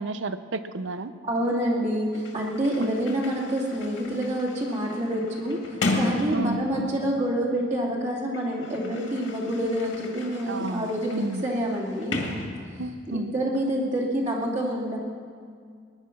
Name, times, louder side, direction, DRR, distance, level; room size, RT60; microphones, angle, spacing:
voice 1, 0.0-1.1 2.8-2.9 6.3-6.6 10.5-11.4 12.8-13.3, right 2 dB, 70° right, 12 dB, 0.7 m, -31 dB
voice 2, 1.2-11.1 11.4-12.2 13.1-15.0, equal, 35° right, -4 dB, 2.5 m, -27 dB
Sliding door, 1.8-1.9 2.1-7.2 8.1-13.1, left 2 dB, 70° left, 2.1 m, -34 dB
20.0 x 10.5 x 5.9 m, 2.1 s
head